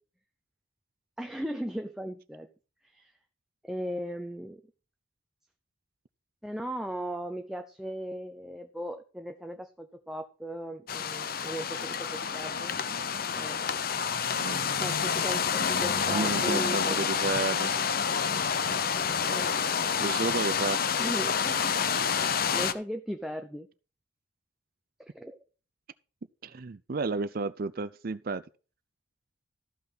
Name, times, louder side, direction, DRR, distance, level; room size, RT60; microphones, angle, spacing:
voice 1, 1.2-2.5 2.8-3.1 3.6-4.6 6.4-12.8 13.3-13.7 14.8-17.3 19.3-19.6 21.0-21.8 22.3-23.7 25.1-25.4, right 1 dB, ahead, 0.7 m, -37 dB
sound 1, 10.9-22.7, left 6 dB, 50° left, 0.7 m, -28 dB
voice 2, 16.1-17.7 20.0-20.8 26.4-28.4, right 4 dB, 50° right, 0.5 m, -32 dB
14.0 x 5.8 x 5.4 m
head